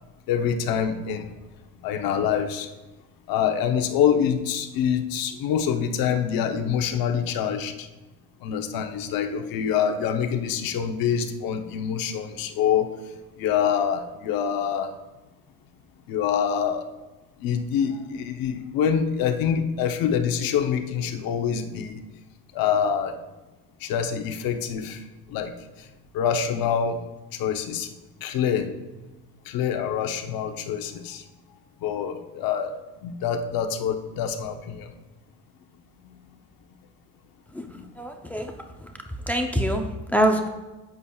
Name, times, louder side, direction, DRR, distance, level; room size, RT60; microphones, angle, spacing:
voice 1, 0.3-1.3 1.8-2.7 3.3-7.9 8.4-12.9 13.4-14.9 16.1-16.9 17.4-22.0 22.5-23.2 23.8-25.0 25.3-25.5 26.1-27.0 27.4-27.9 28.2-28.7 29.5-31.2 31.8-32.7 33.0-34.9 37.7-37.8, left 8 dB, 80° left, 6 dB, 0.9 m, -25 dB
voice 2, 37.5-38.5 38.8-38.9 39.3-40.5, equal, 5° left, 3 dB, 0.6 m, -25 dB
11.5 x 8.1 x 2.4 m, 1.1 s
cardioid pair, 125°, 35 cm